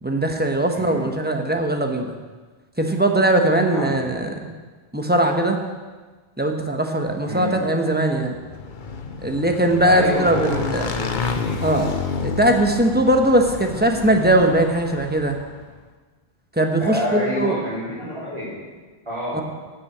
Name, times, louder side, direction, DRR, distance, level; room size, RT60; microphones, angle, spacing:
voice 1, 0.0-2.1 2.8-4.3 4.9-5.6 6.4-8.3 9.2-10.9 11.6-11.9 12.2-15.4 16.6-17.6 19.3-19.4, right 1 dB, 10° right, 3 dB, 1.0 m, -20 dB
voice 2, 0.7-1.1 3.7-4.4 7.2-7.6 9.8-11.2 16.8-18.5 19.0-19.4, left 1 dB, 25° right, -13 dB, 4.4 m, -28 dB
Motorcycle / Engine, 8.3-15.6, left 5 dB, 50° left, 1.0 m, -30 dB
12.5 x 6.1 x 8.3 m, 1.4 s
omnidirectional pair, 1.1 m